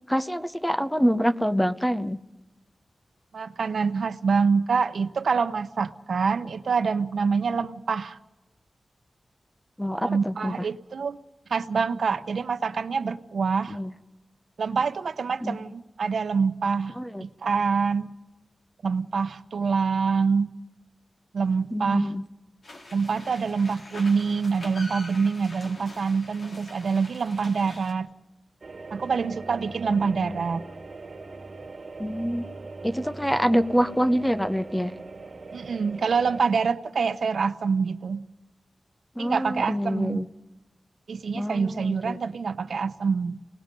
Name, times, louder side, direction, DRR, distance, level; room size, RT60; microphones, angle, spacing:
voice 1, 0.1-2.2 9.8-10.6 13.7-13.9 15.4-15.6 17.0-17.2 21.7-22.2 29.9-30.4 32.0-32.5 32.8-34.9 39.2-40.3 41.3-42.2, equal, 5° left, 10 dB, 0.7 m, -26 dB
voice 2, 3.3-8.2 10.0-11.2 11.5-13.8 14.6-18.1 18.8-20.5 21.3-22.1 22.9-28.1 28.9-30.6 35.5-38.3 39.2-40.3 41.1-43.4, right 5 dB, 90° right, 11 dB, 0.8 m, -26 dB
sound 1, 22.6-27.9, left 1 dB, 70° left, 4.3 m, -44 dB
sound 2, 28.6-36.4, right 3 dB, 50° right, 1.5 m, -41 dB
30.0 x 19.0 x 5.3 m, 1.0 s
wide cardioid pair, 120°, 0 cm